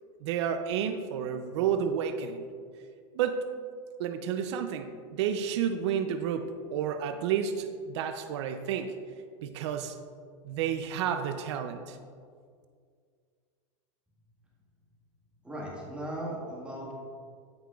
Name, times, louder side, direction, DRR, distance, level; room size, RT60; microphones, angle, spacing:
voice 1, 0.2-2.4 3.1-3.5 4.0-9.0 9.4-10.0 10.5-12.0, right 8 dB, 65° right, 8 dB, 0.5 m, -31 dB
voice 2, 15.4-17.0, right 1 dB, 5° right, -5 dB, 1.7 m, -37 dB
13.0 x 5.7 x 2.4 m, 2.1 s
supercardioid pair, 145°, 16 cm